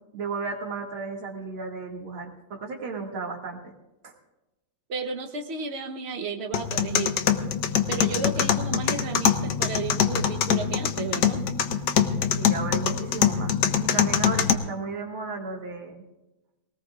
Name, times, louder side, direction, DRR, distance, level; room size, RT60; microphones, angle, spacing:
voice 1, 0.1-3.7 4.0-4.1 12.3-13.6 13.8-16.0, right 4 dB, 75° right, 1 dB, 2.9 m, -34 dB
voice 2, 4.9-7.2 7.9-11.4, right 4 dB, 40° right, 4 dB, 1.0 m, -33 dB
sound 1, 6.5-14.5, left 8 dB, 65° left, 1.3 m, -24 dB
20.5 x 19.0 x 2.4 m, 1.0 s
omnidirectional pair, 2.3 m